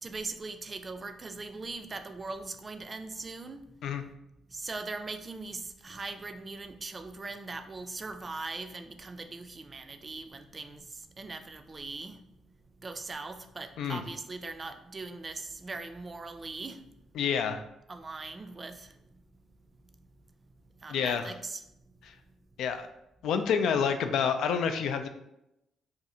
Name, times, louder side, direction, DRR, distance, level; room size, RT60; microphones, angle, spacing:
voice 1, 0.0-3.6 4.5-12.2 12.8-16.8 17.9-18.9 20.8-21.6, right 3 dB, 30° right, 8 dB, 0.3 m, -40 dB
voice 2, 17.2-17.6 20.9-21.3 22.6-22.9 23.2-25.1, left 7 dB, 80° left, 8 dB, 0.3 m, -28 dB
2.6 x 2.5 x 4.1 m, 0.85 s
cardioid pair, 90°, 0 cm